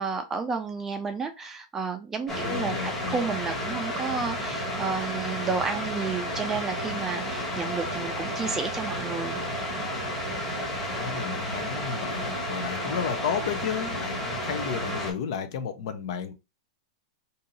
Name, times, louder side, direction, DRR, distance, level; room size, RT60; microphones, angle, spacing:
voice 1, 0.0-9.4, right 5 dB, 10° right, 0.4 m, -31 dB
sound 1, 2.3-15.1, equal, 10° left, 1.2 m, -32 dB
voice 2, 2.4-3.2 10.9-16.3, left 7 dB, 55° left, 0.6 m, -32 dB
2.7 x 2.7 x 4.0 m
supercardioid pair, 165°, 3 cm